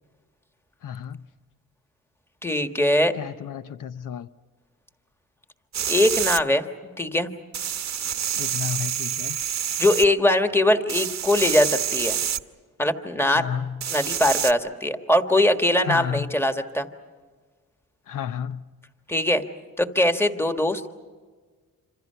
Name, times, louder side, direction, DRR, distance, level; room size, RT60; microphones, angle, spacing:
voice 1, 0.8-1.3 3.2-4.3 8.4-9.4 13.3-13.9 15.8-16.3 18.1-18.7, left 8 dB, 75° left, 0.8 m, -32 dB
voice 2, 2.4-3.1 5.9-6.6 7.0-7.3 9.8-12.2 12.8-13.5 13.9-16.9 19.1-19.4 19.8-20.8, left 1 dB, 5° left, 1.6 m, -21 dB
sound 1, 5.7-6.4 7.5-10.1 10.9-12.4 13.8-14.5, right 9 dB, 55° right, 1.0 m, -27 dB
27.0 x 26.5 x 5.7 m
cardioid pair, 115°, 32 cm